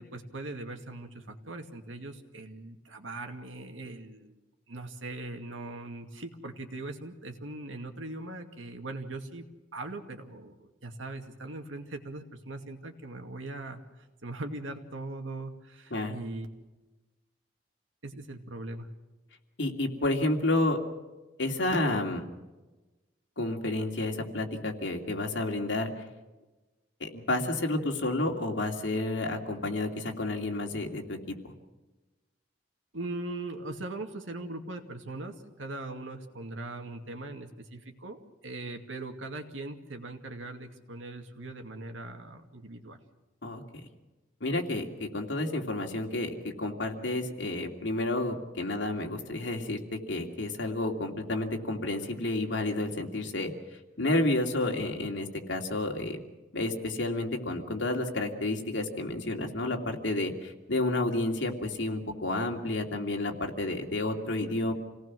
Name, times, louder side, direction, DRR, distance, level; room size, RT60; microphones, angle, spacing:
voice 1, 0.0-4.4 4.7-9.4 9.7-13.8 14.2-16.5 18.0-18.9 32.9-43.0, right 2 dB, 90° right, 5 dB, 2.4 m, -40 dB
voice 2, 19.6-20.8 21.4-22.2 23.4-25.9 27.0-31.2 43.4-43.6 44.4-53.5 54.0-56.2 56.5-64.7, left 2 dB, 75° left, 2 dB, 2.8 m, -30 dB
27.5 x 18.5 x 6.3 m, 1.1 s
head